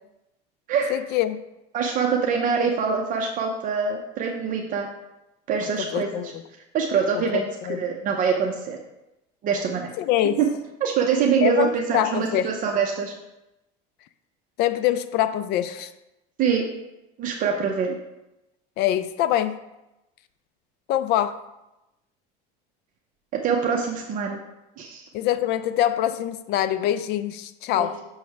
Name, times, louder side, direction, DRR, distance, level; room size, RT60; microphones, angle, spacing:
voice 1, 0.9-1.4 5.9-6.4 7.1-7.8 10.0-10.4 11.4-12.5 14.6-15.9 17.9-18.0 18.8-19.6 20.9-21.4 25.1-28.0, left 12 dB, 55° left, 13 dB, 0.4 m, -24 dB
voice 2, 1.7-4.9 5.5-6.1 6.7-8.8 9.4-9.9 10.4-10.5 10.8-13.1 16.4-16.6 17.2-17.9 23.3-24.4 24.8-25.1 27.8-27.9, right 6 dB, 40° right, 1 dB, 0.7 m, -24 dB
6.3 x 3.2 x 5.8 m, 0.95 s
cardioid pair, 130°, 20 cm